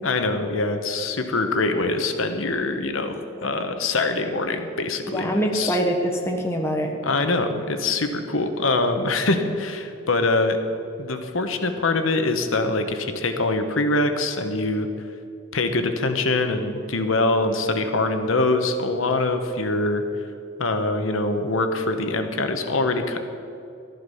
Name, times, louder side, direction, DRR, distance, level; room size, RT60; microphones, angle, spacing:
voice 1, 0.0-5.8 7.0-10.6 11.0-14.9 15.5-20.0 20.6-23.2, left 2 dB, 85° left, 7 dB, 1.1 m, -24 dB
voice 2, 3.1-3.5 5.1-6.9, equal, 15° left, 1 dB, 1.2 m, -25 dB
13.0 x 11.5 x 5.6 m, 2.6 s
head